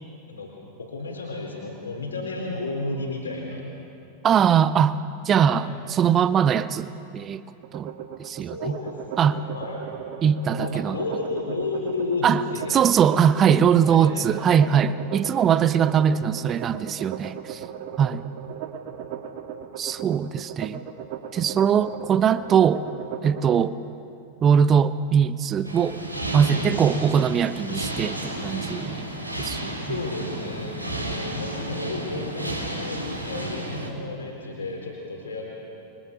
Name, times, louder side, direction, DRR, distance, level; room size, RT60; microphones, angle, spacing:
voice 1, 0.8-3.7 5.3-5.6 8.4-9.8 10.6-12.9 13.9-14.6 26.5-26.8 29.8-35.5, left 3 dB, 75° left, 4.2 m, -32 dB
voice 2, 4.2-5.0 5.2-7.4 7.7-7.9 8.2-8.8 9.2-9.4 10.2-11.0 12.2-12.4 12.7-17.6 18.0-18.2 19.8-20.8 21.3-22.8 23.2-23.7 24.4-26.0 26.3-29.0 29.4-29.6, right 8 dB, 25° right, 0.7 m, -21 dB
sound 1, 7.6-23.6, right 9 dB, 50° right, 2.2 m, -37 dB
sound 2, 25.6-33.9, right 1 dB, 85° right, 3.7 m, -32 dB
29.0 x 24.0 x 7.0 m
figure-of-eight pair, 90°, 0 cm